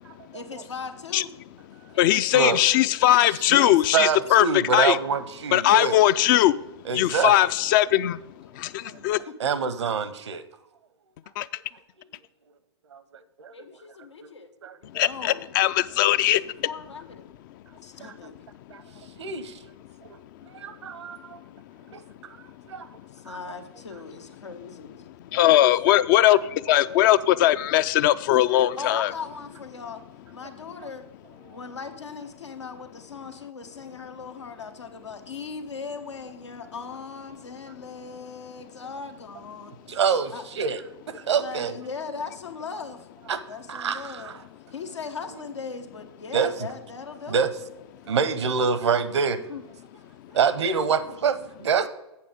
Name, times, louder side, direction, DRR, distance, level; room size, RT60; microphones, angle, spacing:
voice 1, 0.3-1.3 1.9-2.9 8.9-9.1 13.5-14.5 15.0-15.5 16.4-17.3 17.8-18.3 23.1-25.0 25.3-25.6 28.8-30.0 30.3-31.0 31.5-39.7 40.3-40.4 41.4-43.1 43.5-44.3 44.7-47.5 49.5-49.6 50.2-50.5, left 5 dB, 90° left, 7 dB, 1.0 m, -39 dB
voice 2, 2.0-5.0 5.5-6.5 6.9-8.2 8.6-8.7 9.0-9.2 11.4-11.5 15.0-16.4 25.3-26.4 26.7-29.1, left 13 dB, 50° left, 16 dB, 0.4 m, -19 dB
voice 3, 3.5-6.0 6.9-7.3 8.9-10.4 12.9-13.5 14.6-14.8 18.0-18.1 18.7-19.5 20.0-20.1 20.5-21.4 21.9-22.0 22.6-22.9 23.3-23.4 25.9-26.0 26.3-26.4 26.7-26.8 39.9-40.8 41.1-41.8 43.3-43.4 43.7-44.4 46.3-46.7 47.3-47.5 48.0-49.4 50.3-51.9, right 6 dB, 80° right, 14 dB, 0.8 m, -26 dB
8.4 x 6.8 x 5.0 m, 0.98 s
hypercardioid pair, 110°, 14 cm